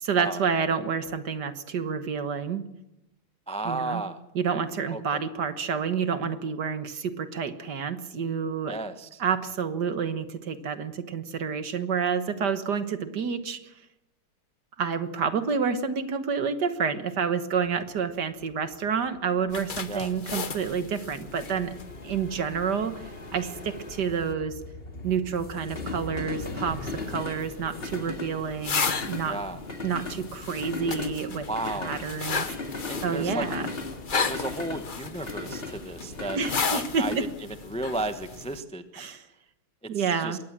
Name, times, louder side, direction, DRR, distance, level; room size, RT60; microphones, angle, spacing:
voice 1, 0.0-2.6 3.6-4.0 4.3-8.8 9.2-13.7 14.8-21.7 22.0-24.6 25.0-29.4 29.8-32.5 33.0-33.7 36.3-37.3 38.9-39.3 39.9-40.4, right 6 dB, 55° right, 11 dB, 1.7 m, -29 dB
voice 2, 3.5-4.2 4.9-5.2 8.7-9.2 19.9-20.1 29.3-29.6 31.5-31.9 32.8-33.5 34.3-36.4 36.7-37.1 37.7-39.0 39.9-40.4, right 2 dB, 5° left, 9 dB, 0.6 m, -33 dB
sound 1, 17.7-37.2, left 3 dB, 25° left, 2.5 m, -38 dB
sound 2, 19.5-24.3 26.4-38.6, left 5 dB, 45° left, 0.6 m, -35 dB
22.0 x 18.0 x 7.5 m, 0.88 s
omnidirectional pair, 2.4 m